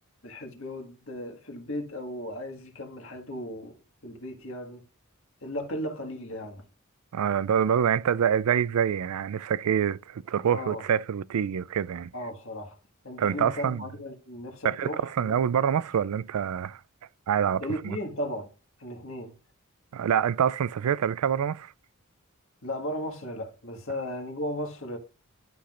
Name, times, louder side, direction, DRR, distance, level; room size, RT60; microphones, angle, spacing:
voice 1, 0.2-3.8 4.0-4.8 5.4-6.6 10.5-10.8 12.1-12.8 13.0-15.4 17.6-18.5 18.8-19.3 22.6-25.0, left 1 dB, 60° left, 1.7 m, -36 dB
voice 2, 7.1-12.1 13.2-13.8 14.6-16.8 17.3-18.0 19.9-21.7, right 8 dB, 85° right, 0.4 m, -26 dB
11.5 x 5.9 x 2.5 m
head